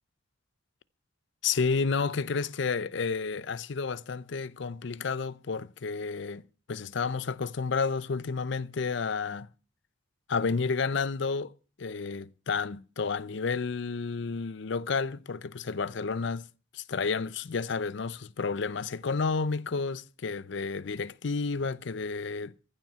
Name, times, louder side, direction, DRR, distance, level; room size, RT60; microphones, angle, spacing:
voice 1, 1.4-6.4 6.7-9.5 10.3-11.5 11.8-16.5 16.7-22.5, left 4 dB, 65° left, 0.5 m, -31 dB
15.0 x 7.5 x 6.8 m
head